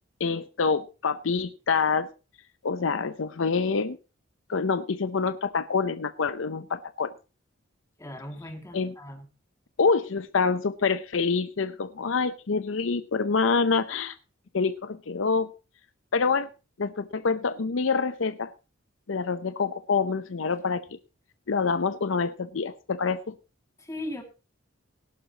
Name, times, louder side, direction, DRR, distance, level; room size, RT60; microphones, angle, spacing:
voice 1, 0.2-2.1 2.6-4.0 4.5-7.1 8.7-8.9 9.8-14.2 14.5-15.5 16.1-16.5 16.8-18.5 19.1-20.8 21.5-23.3, left 5 dB, 70° left, 12 dB, 0.7 m, -26 dB
voice 2, 8.0-9.3 23.8-24.2, left 1 dB, 15° left, 4 dB, 2.2 m, -38 dB
18.0 x 11.0 x 2.9 m, 0.31 s
head